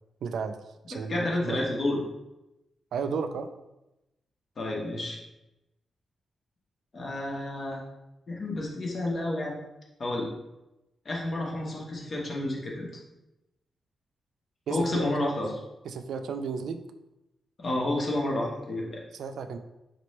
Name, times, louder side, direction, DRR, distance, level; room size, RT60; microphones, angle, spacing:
voice 1, 0.2-0.6 0.9-1.6 2.9-3.5 14.7-15.3 15.8-16.8 19.1-19.6, right 5 dB, 85° right, 8 dB, 0.3 m, -33 dB
voice 2, 0.9-2.0 4.6-5.2 6.9-7.8 8.3-9.5 10.0-10.3 11.0-12.9 14.7-15.5 17.6-19.0, left 1 dB, 40° left, -2 dB, 1.0 m, -30 dB
4.1 x 3.0 x 3.2 m, 0.94 s
wide cardioid pair, 135°, 0 cm